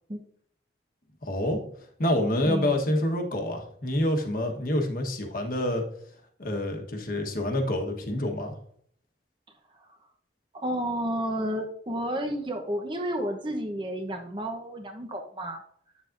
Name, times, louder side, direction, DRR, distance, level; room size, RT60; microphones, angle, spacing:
voice 1, 1.2-1.6 2.0-5.8 6.4-8.6, left 1 dB, 50° left, 3 dB, 1.3 m, -27 dB
voice 2, 2.4-2.8 9.7-10.0 10.5-15.6, equal, 25° right, 3 dB, 0.9 m, -31 dB
8.8 x 7.2 x 2.6 m, 0.64 s
head